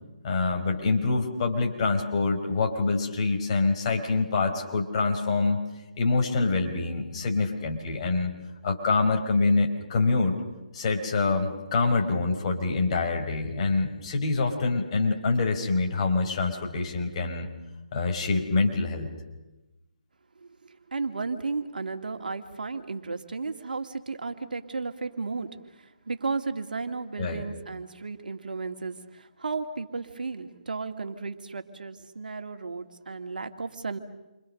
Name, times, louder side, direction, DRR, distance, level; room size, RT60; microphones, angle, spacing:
voice 1, 0.2-5.6 6.0-8.3 8.6-10.4 10.7-17.5 17.9-19.1 27.2-27.4, left 3 dB, 40° left, 3 dB, 4.7 m, -25 dB
voice 2, 20.4-34.0, right 4 dB, 70° right, 7 dB, 2.3 m, -34 dB
28.5 x 26.0 x 6.6 m, 1.0 s
figure-of-eight pair, 150°, 5 cm